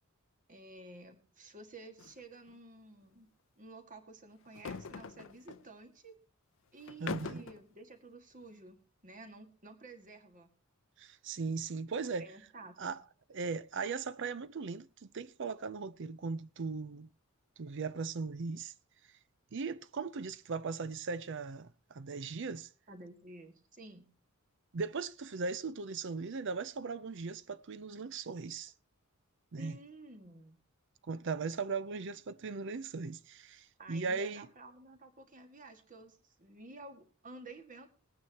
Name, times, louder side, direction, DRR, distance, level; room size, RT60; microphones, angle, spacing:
voice 1, 0.5-3.3 3.6-6.2 6.7-10.5 12.2-12.9 22.9-24.1 29.6-30.6 33.8-37.9, right 2 dB, 40° right, 1.8 m, -52 dB
sound 1, 2.0-2.2 2.5-2.6 4.4-5.6 6.8-7.6, left 5 dB, 65° left, 0.5 m, -42 dB
voice 2, 7.0-7.4 11.0-12.3 12.8-13.0 13.3-17.1 17.6-18.7 19.5-22.7 24.7-28.7 29.5-29.8 31.1-34.5, right 4 dB, 60° right, 0.5 m, -38 dB
21.0 x 9.5 x 2.9 m
head